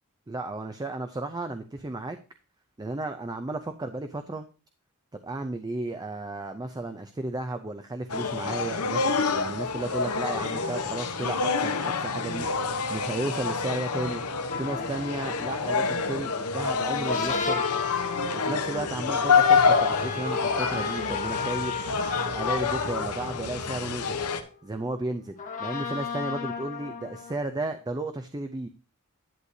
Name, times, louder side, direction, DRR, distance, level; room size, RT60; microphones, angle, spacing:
voice 1, 0.3-2.2 2.8-4.5 5.2-12.5 12.9-14.2 14.6-17.7 18.3-21.8 22.3-24.2 24.6-28.7, right 2 dB, 20° right, 7 dB, 0.4 m, -33 dB
sound 1, 8.1-24.4, left 5 dB, 85° left, 1.0 m, -27 dB
sound 2, 14.5-24.8 25.3-27.3, left 5 dB, 35° left, 1.3 m, -35 dB
10.5 x 8.1 x 2.7 m, 0.34 s
head